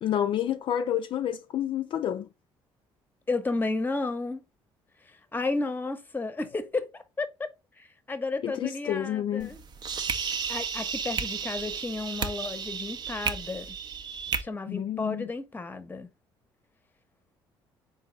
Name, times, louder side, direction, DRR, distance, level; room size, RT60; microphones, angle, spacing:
voice 1, 0.0-2.3 8.4-9.5 14.7-15.3, left 10 dB, 55° left, 0.4 m, -29 dB
voice 2, 3.3-4.4 5.1-7.5 7.8-9.6 10.5-13.7 14.4-16.1, left 3 dB, 20° left, 0.8 m, -32 dB
sound 1, 9.4-14.4, right 6 dB, 45° right, 0.6 m, -33 dB
3.9 x 2.7 x 3.8 m
supercardioid pair, 80°, 10 cm